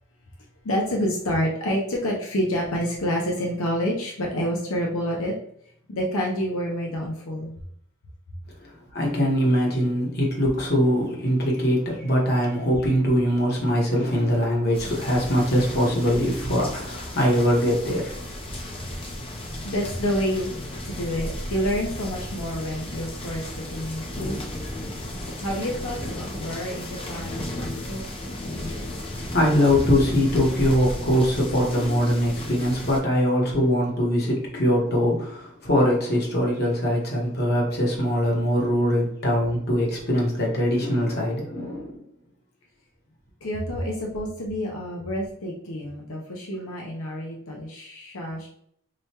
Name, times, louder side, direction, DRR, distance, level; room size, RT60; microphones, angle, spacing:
voice 1, 0.6-5.3 5.9-7.5 18.7-24.4 24.8-28.1 43.4-48.5, equal, 80° left, -2 dB, 0.7 m, -28 dB
voice 2, 8.6-18.2 29.1-42.0, equal, 50° left, -2 dB, 1.1 m, -22 dB
sound 1, 14.7-33.0, left 1 dB, 25° left, 0.6 m, -34 dB
4.8 x 2.3 x 2.8 m, 0.68 s
head